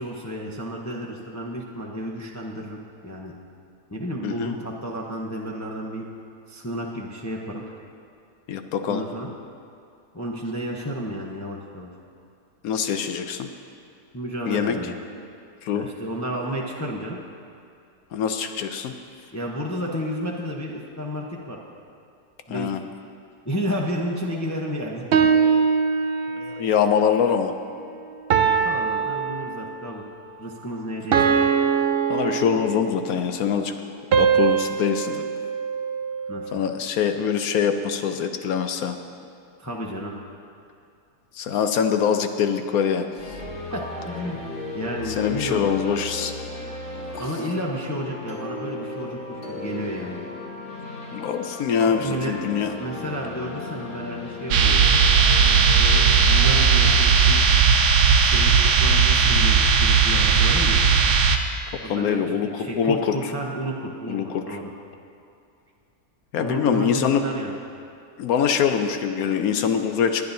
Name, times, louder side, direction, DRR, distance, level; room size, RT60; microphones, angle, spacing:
voice 1, 0.0-3.3 3.9-6.1 6.5-7.6 8.9-9.3 10.1-11.9 14.1-14.9 15.7-17.2 19.3-21.6 22.5-22.7 23.4-25.3 28.4-30.0 30.4-31.4 36.3-36.5 39.6-40.1 41.5-41.6 43.7-44.5 44.7-45.6 47.2-50.2 52.0-52.3 52.8-54.8 55.7-57.4 58.2-60.8 61.8-62.2 62.6-64.7 66.3-67.6, equal, 15° left, -2 dB, 0.6 m, -31 dB
voice 2, 4.2-4.5 8.5-9.0 12.6-13.5 14.5-14.8 15.6-15.9 18.1-18.9 22.5-22.8 26.4-27.5 32.1-33.8 34.2-35.2 36.5-39.0 41.3-43.1 45.1-46.3 51.1-52.7 61.9-63.2 64.1-64.6 66.3-67.2 68.2-70.2, left 7 dB, 70° left, 7 dB, 1.0 m, -24 dB
sound 1, 25.1-26.7 28.3-30.0 31.1-33.0 34.1-36.4, right 6 dB, 70° right, 0.5 m, -22 dB
sound 2, 43.2-58.0, left 3 dB, 45° left, 2.0 m, -36 dB
sound 3, 54.5-61.4, right 5 dB, 85° right, 1.3 m, -17 dB
22.0 x 9.4 x 2.7 m, 2.5 s
omnidirectional pair, 1.7 m